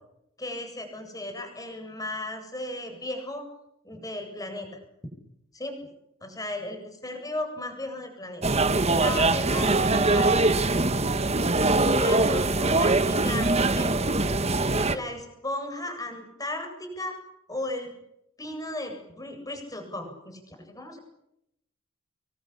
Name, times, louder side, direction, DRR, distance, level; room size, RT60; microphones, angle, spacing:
voice 1, 0.4-3.5 3.8-4.8 5.5-5.8 6.2-8.4 8.9-10.5 11.9-13.9 14.9-17.2 17.5-17.9 18.4-21.0, left 1 dB, 20° left, 5 dB, 7.9 m, -35 dB
sound 1, 8.4-15.0, right 2 dB, 35° right, 1.7 m, -23 dB
27.0 x 23.0 x 8.6 m, 0.81 s
head